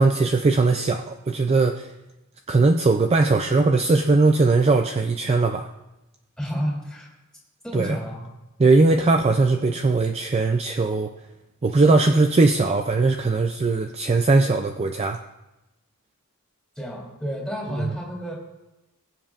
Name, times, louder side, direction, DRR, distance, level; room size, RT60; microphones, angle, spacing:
voice 1, 0.0-1.9 2.5-5.7 7.7-8.0 8.6-11.1 11.6-15.2 17.8-17.9, right 3 dB, 30° right, 5 dB, 0.4 m, -19 dB
voice 2, 6.4-7.1 7.6-8.3 16.7-18.3, equal, 5° left, -3 dB, 3.0 m, -30 dB
21.5 x 7.3 x 2.5 m, 0.98 s
head